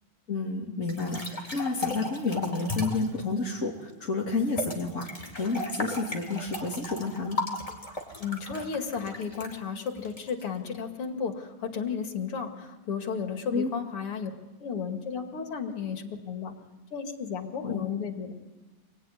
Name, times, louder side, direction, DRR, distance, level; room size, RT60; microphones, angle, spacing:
voice 1, 0.3-7.4 13.5-13.7 17.6-17.9, left 3 dB, 35° left, -4 dB, 3.2 m, -30 dB
sound 1, 0.9-3.1 4.6-10.7, left 2 dB, 15° left, 3.6 m, -36 dB
voice 2, 8.2-14.3 14.6-16.5 16.9-18.3, left 6 dB, 85° left, 4 dB, 3.3 m, -33 dB
27.0 x 21.5 x 9.9 m, 1.2 s
omnidirectional pair, 2.4 m